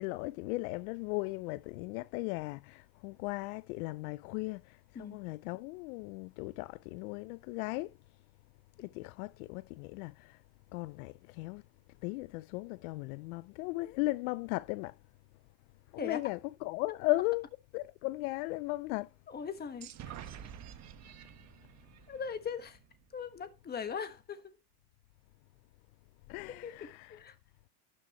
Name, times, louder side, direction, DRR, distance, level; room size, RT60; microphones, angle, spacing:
voice 1, 0.0-7.9 8.8-10.4 10.7-11.6 12.0-15.0 15.9-17.4 17.7-19.1 26.3-27.1, left 21 dB, 75° left, 0.5 m, -37 dB
voice 2, 16.0-16.3 19.3-19.9 22.1-22.8 23.1-24.5 26.6-27.3, left 6 dB, 20° left, 1.3 m, -40 dB
sound 1, 19.8-23.5, right 9 dB, 40° right, 1.3 m, -49 dB
11.5 x 6.8 x 3.0 m
supercardioid pair, 130°, 44 cm